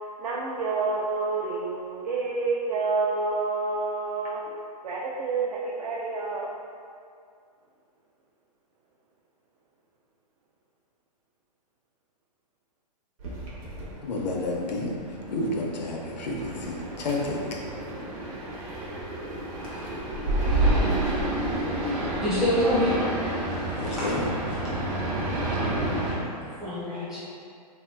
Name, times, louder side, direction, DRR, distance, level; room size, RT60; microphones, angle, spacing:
voice 1, 0.2-4.4 4.8-6.5, right 3 dB, 70° right, -4 dB, 0.4 m, -28 dB
sound 1, 13.2-26.1, right 1 dB, 55° right, 0.8 m, -29 dB
voice 2, 14.0-14.9 15.3-17.5 23.8-24.3, left 2 dB, 85° left, -1 dB, 0.6 m, -30 dB
voice 3, 22.2-23.0 23.5-24.1 26.4-27.2, equal, ahead, -13 dB, 0.4 m, -27 dB
3.0 x 2.7 x 2.2 m, 2.4 s
hypercardioid pair, 160°, 21 cm